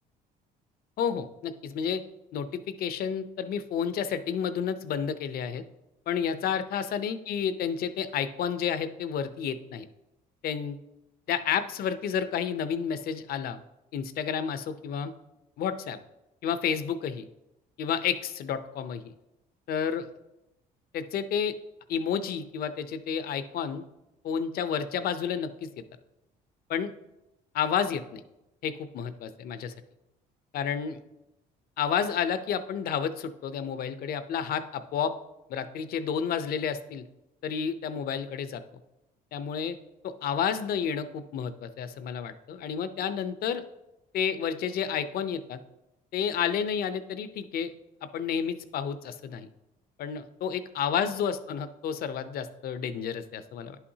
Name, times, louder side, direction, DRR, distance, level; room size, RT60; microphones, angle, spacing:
voice 1, 1.0-2.0 2.3-5.6 6.1-9.9 10.4-10.8 11.3-13.6 13.9-15.1 15.6-16.0 16.4-17.2 17.8-19.1 19.7-20.1 20.9-21.6 21.9-23.9 24.2-25.7 26.7-26.9 27.5-28.2 28.6-29.7 30.5-31.0 31.8-35.1 35.5-37.0 37.4-38.6 39.3-39.8 40.0-43.6 44.1-45.6 46.1-47.7 48.1-49.5 50.0-53.8, left 7 dB, 60° left, 11 dB, 0.6 m, -30 dB
10.5 x 5.7 x 2.7 m, 0.92 s
cardioid pair, 110°, 17 cm